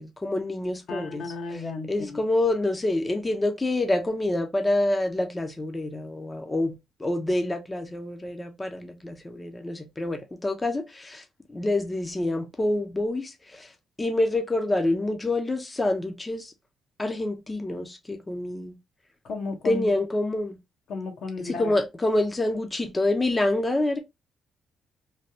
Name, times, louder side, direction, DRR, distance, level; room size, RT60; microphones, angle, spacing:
voice 1, 0.0-1.2 1.5-1.6 1.9-13.7 14.0-16.5 17.0-18.8 19.6-20.6 21.4-24.0, left 2 dB, 20° left, 0.6 m, -27 dB
voice 2, 0.9-2.2 19.2-19.9 20.9-21.7, left 3 dB, 70° left, 1.0 m, -33 dB
3.2 x 2.3 x 2.7 m
cardioid pair, 90°, 0 cm